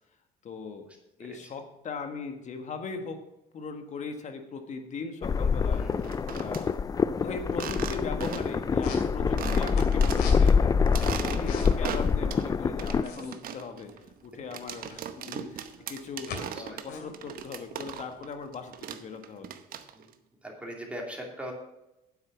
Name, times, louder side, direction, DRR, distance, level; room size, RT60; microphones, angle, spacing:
voice 1, 0.4-0.9 1.2-3.2 3.5-5.8 6.3-6.8 7.2-10.8 11.2-19.6, left 5 dB, 45° left, 6 dB, 1.6 m, -39 dB
sound 1, 5.2-13.0, left 5 dB, 20° left, 0.4 m, -25 dB
sound 2, 5.9-6.6 7.5-8.6 8.9-9.0 9.4-10.5 10.9-12.5 12.8-18.3 18.5-20.1, right 9 dB, 55° right, 0.9 m, -38 dB
sound 3, 8.7-9.8 10.1-11.9 12.2-12.3 12.6-15.1 15.6-16.4 16.7-18.6, left 4 dB, 70° left, 2.9 m, -41 dB
voice 2, 20.4-21.5, equal, 5° right, -1 dB, 2.7 m, -40 dB
9.4 x 8.0 x 6.0 m, 0.92 s
cardioid pair, 125°, 17 cm